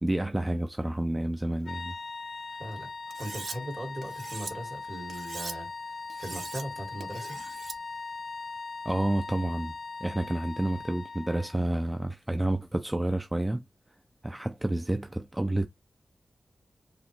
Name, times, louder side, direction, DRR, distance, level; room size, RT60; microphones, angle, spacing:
voice 1, 0.0-1.9 8.8-9.7 10.0-13.6 14.2-15.7, right 1 dB, 15° right, 0.4 m, -29 dB
sound 1, 1.6-11.6, left 4 dB, 60° left, 0.4 m, -40 dB
voice 2, 2.6-2.9 3.2-7.4, right 1 dB, 45° right, 2.2 m, -39 dB
Cutlery silverware, 3.1-3.6 4.0-4.5 5.1-5.6 6.1-6.6 7.0-7.8, right 4 dB, 65° right, 0.6 m, -41 dB
4.8 x 3.0 x 3.2 m
wide cardioid pair, 95°, 0 cm